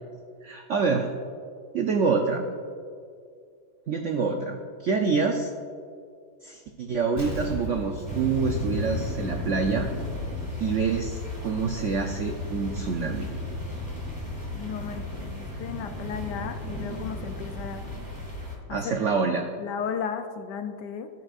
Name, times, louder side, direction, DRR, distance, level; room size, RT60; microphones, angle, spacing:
voice 1, 0.4-1.1 1.7-2.4 3.9-5.5 6.4-9.9 10.6-13.3 18.7-19.5, right 5 dB, 80° right, 3 dB, 0.6 m, -26 dB
Explosion, 7.2-9.8 10.1-10.2, equal, 10° left, 1.9 m, -38 dB
sound 1, 8.1-18.6, left 2 dB, 10° right, 1.9 m, -34 dB
voice 2, 14.5-17.8 18.7-19.0 19.6-21.1, left 7 dB, 75° left, 8 dB, 1.1 m, -34 dB
18.0 x 6.2 x 2.5 m, 2.2 s
omnidirectional pair, 2.0 m